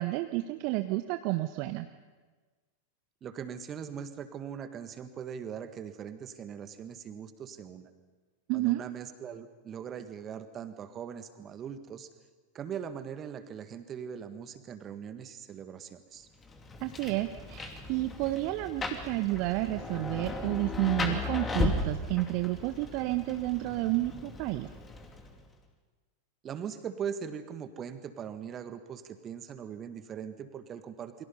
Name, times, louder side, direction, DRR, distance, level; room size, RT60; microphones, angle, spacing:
voice 1, 0.0-1.9 8.5-8.8 16.8-24.7, right 18 dB, 45° right, 9 dB, 0.8 m, -30 dB
voice 2, 3.2-7.9 8.5-12.1 12.5-16.3 26.4-31.3, right 8 dB, 25° right, 10 dB, 1.7 m, -40 dB
Rain, 16.4-25.5, left 3 dB, 20° left, 2.7 m, -36 dB
28.5 x 23.0 x 5.5 m, 1.4 s
figure-of-eight pair, 90°, 0 cm